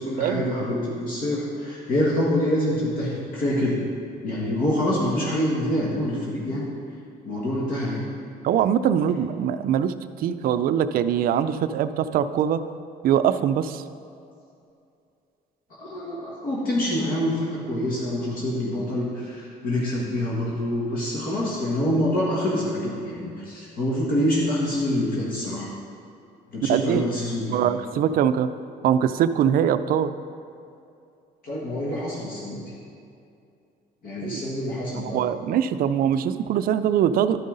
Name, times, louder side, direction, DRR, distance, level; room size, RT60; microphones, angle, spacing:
voice 1, 0.0-3.8 4.2-6.6 7.2-8.1 15.8-25.7 26.5-27.7 31.4-32.7 34.0-35.2, left 1 dB, 60° left, -6 dB, 1.6 m, -26 dB
voice 2, 8.4-12.6 13.0-13.8 26.6-27.1 27.5-28.5 28.8-30.1 34.2-34.4 34.9-37.4, right 9 dB, 60° right, 11 dB, 0.4 m, -22 dB
12.0 x 5.5 x 3.9 m, 2.5 s
cardioid pair, 110°, 17 cm